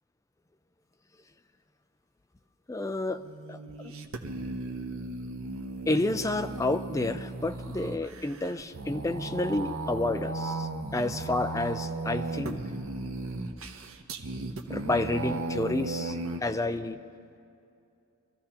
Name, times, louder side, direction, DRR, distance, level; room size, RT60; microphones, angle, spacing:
voice 1, 2.7-3.2 3.5-3.6 3.8-3.9 5.9-12.6 14.7-17.0, left 2 dB, 15° left, 9 dB, 0.4 m, -30 dB
sound 1, 3.1-16.4, right 2 dB, 65° right, 0.8 m, -36 dB
23.5 x 14.0 x 2.9 m, 2.6 s
head